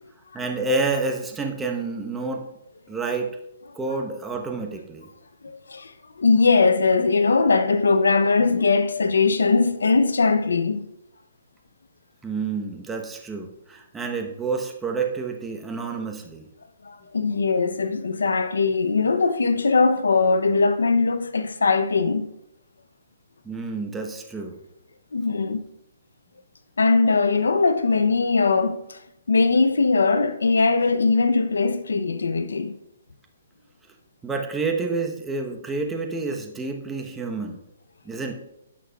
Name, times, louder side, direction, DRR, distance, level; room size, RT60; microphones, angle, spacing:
voice 1, 0.3-2.4 2.9-3.4 3.7-5.1 12.2-16.5 23.4-24.6 34.2-37.6 38.0-38.3, right 3 dB, 10° right, 1.0 m, -29 dB
voice 2, 5.4-10.9 16.8-22.3 25.1-25.6 26.8-29.0 29.3-32.7, left 4 dB, 90° left, 0.6 m, -20 dB
15.0 x 6.1 x 2.3 m
hypercardioid pair, 145°, 0 cm